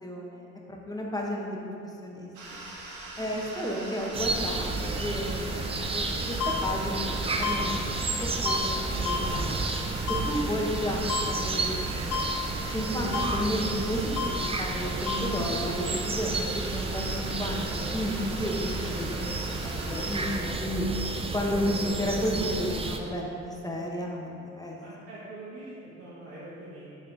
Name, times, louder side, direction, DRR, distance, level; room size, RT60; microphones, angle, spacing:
voice 1, 0.0-1.6 2.0-2.6 3.2-7.1 7.4-7.8 8.2-9.5 10.1-12.2 12.7-17.7 17.9-19.3 19.8-20.9 21.3-24.8, equal, 15° left, -2 dB, 0.8 m, -32 dB
sound 1, 2.3-20.4, right 2 dB, 85° right, 1.0 m, -42 dB
sound 2, 4.1-23.0, right 3 dB, 20° right, 0.4 m, -31 dB
sound 3, 6.4-6.5 7.4-7.5 8.4-8.6 9.0-9.2 10.1-10.2 11.1-11.2 12.1-12.2 13.1-13.3 14.2-14.3 15.1-15.2, left 6 dB, 80° left, 0.5 m, -29 dB
voice 2, 24.8-27.0, right 2 dB, 50° right, -10 dB, 1.4 m, -44 dB
6.1 x 3.1 x 5.2 m, 2.7 s
cardioid pair, 90°, 30 cm